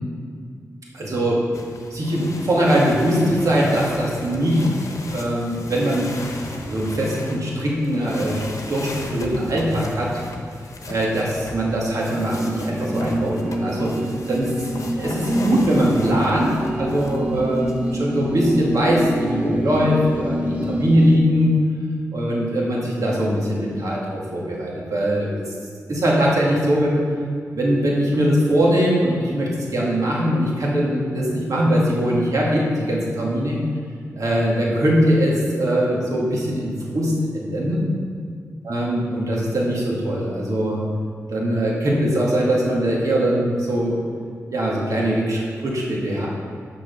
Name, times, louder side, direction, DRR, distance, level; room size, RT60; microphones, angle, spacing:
voice 1, 0.9-1.4 1.9-4.7 5.1-6.1 6.6-10.1 10.9-13.9 14.3-21.5 22.1-25.5 25.9-27.0 27.5-33.6 34.2-37.8 38.6-40.8 41.3-44.0 44.5-46.3, equal, 70° right, -4 dB, 2.1 m, -21 dB
sound 1, 1.5-17.9 18.6-19.3, left 2 dB, 60° left, 1.0 m, -35 dB
sound 2, 12.1-21.2, right 1 dB, 20° right, 1.1 m, -26 dB
6.8 x 6.2 x 5.3 m, 2.1 s
cardioid pair, 55°, 6 cm